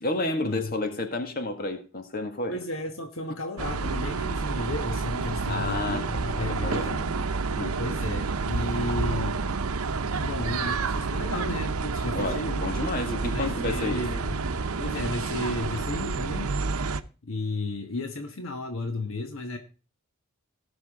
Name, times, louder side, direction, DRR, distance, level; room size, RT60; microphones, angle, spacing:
voice 1, 0.0-2.6 5.5-7.1 7.6-7.8 10.0-10.1 12.1-14.1 14.8-14.9, left 2 dB, 40° left, 7 dB, 1.9 m, -31 dB
voice 2, 2.5-6.9 7.8-9.6 10.2-12.7 13.3-14.5 14.8-16.5 17.3-19.6, left 2 dB, 65° left, 5 dB, 1.4 m, -33 dB
sound 1, 3.6-17.0, right 4 dB, 80° right, 0.8 m, -29 dB
18.0 x 6.1 x 3.6 m, 0.35 s
head